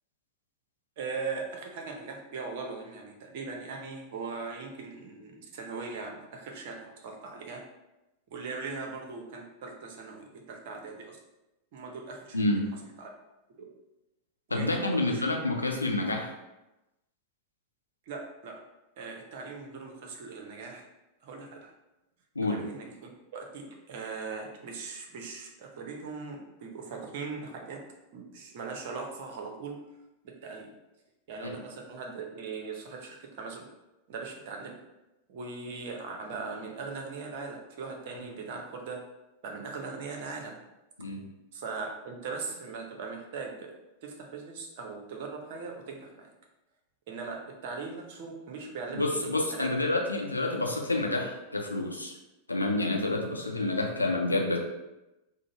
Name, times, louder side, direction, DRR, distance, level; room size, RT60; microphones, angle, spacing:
voice 1, 1.0-7.6 8.3-11.2 11.7-12.4 13.0-13.1 13.5-13.7 14.5-15.2 18.1-18.6 19.0-20.8 21.2-21.7 22.5-27.8 28.1-29.8 30.2-30.7 31.3-33.7 34.1-34.8 35.3-39.0 39.4-40.6 41.5-43.7 44.0-46.3 47.1-49.7, right 4 dB, 50° right, 2 dB, 0.7 m, -40 dB
voice 2, 14.5-16.3 22.4-22.6 31.4-31.6 38.2-38.3 41.0-41.2 48.9-52.1 52.5-54.6, left 2 dB, 80° left, 0 dB, 0.6 m, -28 dB
3.8 x 2.0 x 4.0 m, 0.97 s
figure-of-eight pair, 90°, 0 cm